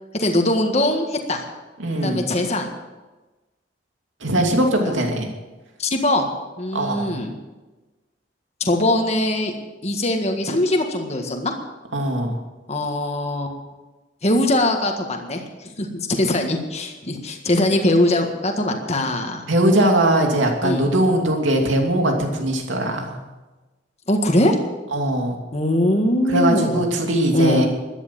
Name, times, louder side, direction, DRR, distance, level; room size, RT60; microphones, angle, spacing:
voice 1, 0.1-1.4 2.0-2.7 4.8-4.9 5.8-6.3 6.6-7.3 8.6-9.5 9.8-11.5 12.7-13.5 14.2-19.4 20.6-20.9 24.1-24.6 25.5-26.9 27.3-27.7, left 1 dB, 35° left, 3 dB, 1.7 m, -21 dB
voice 2, 1.8-2.3 4.2-5.3 6.7-7.2 11.9-12.4 19.5-23.2 24.9-25.4 26.3-27.7, right 1 dB, 80° right, 2 dB, 2.7 m, -20 dB
13.0 x 11.0 x 7.6 m, 1.2 s
head